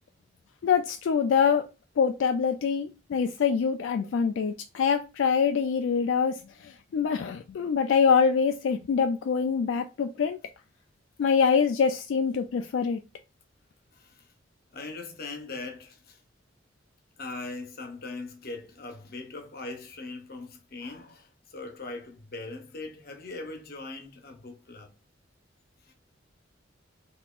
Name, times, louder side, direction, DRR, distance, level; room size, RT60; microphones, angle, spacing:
voice 1, 0.6-1.7 2.0-10.4 11.2-13.0, left 6 dB, 75° left, 0.3 m, -25 dB
voice 2, 13.9-14.3 14.7-16.2 17.2-24.9 25.8-25.9, left 3 dB, 55° left, 0.8 m, -40 dB
3.6 x 2.9 x 2.4 m
head